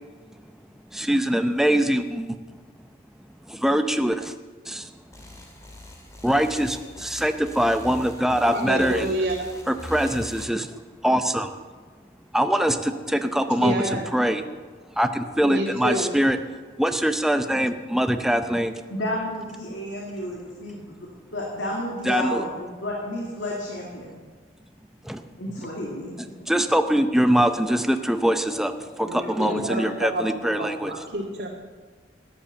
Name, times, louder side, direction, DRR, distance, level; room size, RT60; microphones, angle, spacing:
voice 1, 0.9-2.3 3.5-4.3 4.7-4.9 6.2-9.1 9.7-10.7 11.0-11.5 12.3-14.4 15.0-16.4 16.8-18.7 22.1-22.4 25.1-25.2 26.5-30.9, equal, ahead, 8 dB, 0.6 m, -23 dB
sound 1, 5.1-10.4, left 1 dB, 20° left, 2.2 m, -42 dB
voice 2, 8.4-9.5 12.7-12.8 13.4-14.0 15.4-16.1 29.0-31.5, right 1 dB, 60° right, -4 dB, 1.9 m, -29 dB
voice 3, 18.9-24.2 25.3-26.5 27.4-27.5 29.4-29.9 30.3-30.4, left 1 dB, 85° left, -3 dB, 2.5 m, -32 dB
14.0 x 10.5 x 7.1 m, 1.4 s
head